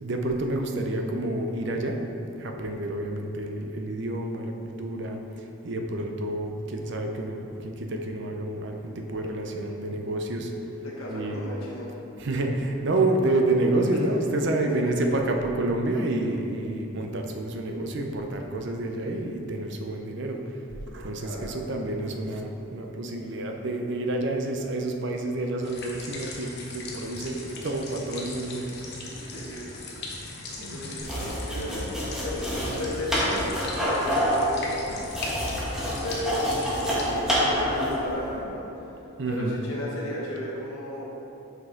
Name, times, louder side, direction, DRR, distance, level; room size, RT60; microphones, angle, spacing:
voice 1, 0.0-2.0 2.4-5.2 5.6-10.5 11.1-11.4 12.2-20.4 20.7-29.3 30.6-30.9 35.4-35.5 39.2-39.6, right 2 dB, 55° right, 3 dB, 0.6 m, -29 dB
voice 2, 10.8-11.9 14.7-14.8 21.2-21.6 29.3-29.7 30.6-35.1 36.0-38.6 39.3-41.0, equal, 85° left, -4 dB, 1.0 m, -34 dB
sound 1, 25.6-37.1, left 2 dB, 50° left, 0.9 m, -39 dB
sound 2, 31.0-38.0, equal, 5° right, 1.2 m, -27 dB
6.1 x 5.3 x 3.7 m, 2.9 s
head